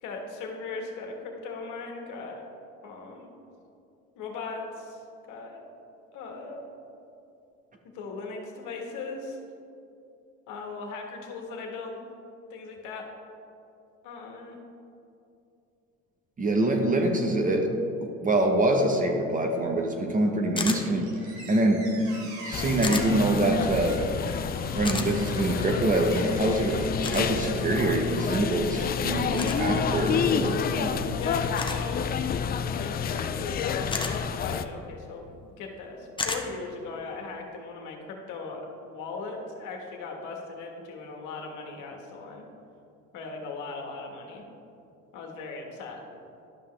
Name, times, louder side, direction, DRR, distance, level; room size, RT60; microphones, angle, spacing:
voice 1, 0.0-2.4 2.8-3.3 4.1-5.6 6.1-6.6 7.9-9.4 10.5-12.0 12.5-13.0 14.0-14.6 31.2-32.1 32.8-33.9 34.4-42.4 43.1-44.4 45.1-46.1, left 4 dB, 70° left, 1 dB, 1.5 m, -38 dB
voice 2, 16.4-17.7 18.0-21.9 22.4-24.0 24.7-31.2, right 2 dB, 25° right, 3 dB, 0.9 m, -25 dB
sound 1, 20.6-20.8 22.8-23.1 24.8-25.1 27.0-27.3 29.4-29.6 31.6-31.8 33.9-34.1 36.2-36.4, left 3 dB, 15° left, 0.8 m, -31 dB
Squeak, 20.7-27.6, right 2 dB, 65° right, 1.5 m, -44 dB
sound 2, 22.5-34.7, left 7 dB, 30° left, 0.4 m, -29 dB
11.5 x 5.5 x 3.3 m, 2.7 s
supercardioid pair, 85°, 31 cm